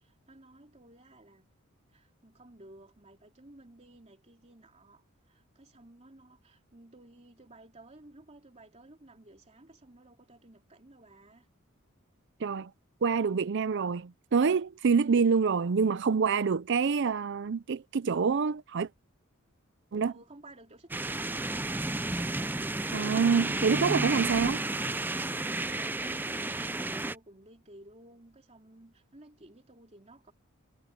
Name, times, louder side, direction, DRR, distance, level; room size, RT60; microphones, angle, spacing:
voice 1, 0.0-1.5 1.9-11.5 20.0-21.7 25.6-30.3, right 1 dB, 30° right, 3.2 m, -55 dB
voice 2, 12.4-12.7 13.0-18.9 19.9-20.1 22.9-24.6, right 5 dB, 60° right, 0.5 m, -26 dB
sound 1, 20.9-27.2, right 2 dB, 10° right, 0.4 m, -32 dB
head